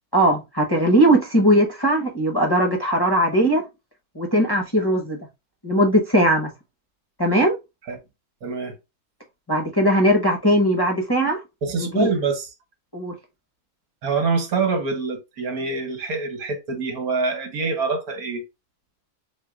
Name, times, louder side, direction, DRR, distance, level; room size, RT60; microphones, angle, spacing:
voice 1, 0.1-3.6 4.1-5.2 5.6-6.5 7.2-7.6 9.5-11.4 11.8-12.1 12.9-13.1, right 1 dB, 20° left, 0.7 m, -19 dB
voice 2, 8.4-8.7 11.6-12.5 14.0-18.4, right 4 dB, 75° right, 1.7 m, -25 dB
7.7 x 2.7 x 2.4 m
omnidirectional pair, 1.6 m